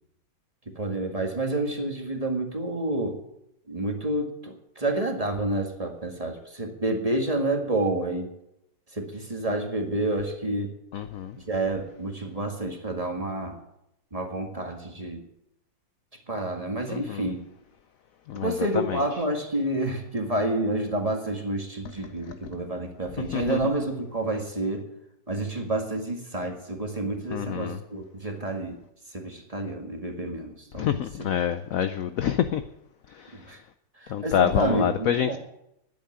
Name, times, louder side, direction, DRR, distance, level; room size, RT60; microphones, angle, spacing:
voice 1, 0.6-3.2 3.7-8.3 8.9-10.7 11.4-13.6 14.1-15.3 16.3-17.4 18.4-24.9 25.3-28.8 29.1-31.3 33.5-33.6 34.0-35.4, right 2 dB, 20° right, 3 dB, 1.7 m, -29 dB
voice 2, 10.9-11.4 16.9-17.2 18.3-19.0 23.3-23.6 27.3-27.8 30.8-32.6 33.2-33.4 34.1-35.4, left 9 dB, 70° left, 11 dB, 0.8 m, -27 dB
10.0 x 8.5 x 9.7 m, 0.84 s
omnidirectional pair, 2.1 m